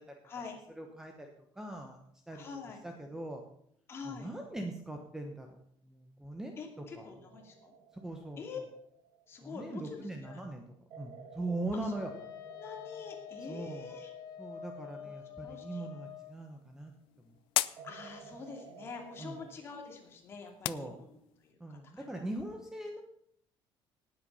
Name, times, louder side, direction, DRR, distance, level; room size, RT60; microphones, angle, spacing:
voice 1, 0.2-0.6 2.3-2.8 3.9-4.3 6.6-7.7 8.4-8.6 9.3-10.4 11.8-11.9 12.5-14.1 15.0-15.1 15.4-15.9 17.8-21.2 21.4-22.1, left 5 dB, 30° left, 2 dB, 2.7 m, -46 dB
voice 2, 0.8-2.0 2.3-2.4 2.8-3.4 4.0-5.6 5.8-6.6 6.9-7.1 8.0-8.4 9.4-10.6 11.0-12.1 13.5-13.9 14.4-16.9 17.2-17.3 19.2-19.4 20.7-21.0 21.6-23.0, right 2 dB, 5° right, 3 dB, 1.1 m, -40 dB
sound 1, 7.3-10.0 10.9-16.7 17.8-19.5, right 5 dB, 80° right, 2.6 m, -54 dB
Wind instrument woodwind instrument, 11.9-16.4, left 9 dB, 45° left, 2.3 m, -47 dB
sound 2, 16.0-21.5, left 17 dB, 90° left, 0.5 m, -40 dB
18.5 x 8.0 x 5.6 m, 0.69 s
cardioid pair, 180°, 9 cm